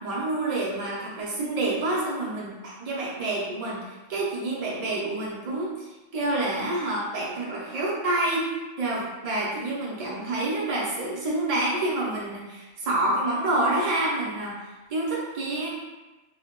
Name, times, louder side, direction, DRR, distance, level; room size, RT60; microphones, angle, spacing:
voice 1, 0.0-14.6 14.9-15.7, right 2 dB, 65° right, -5 dB, 0.3 m, -28 dB
2.1 x 2.1 x 2.8 m, 1.1 s
omnidirectional pair, 1.3 m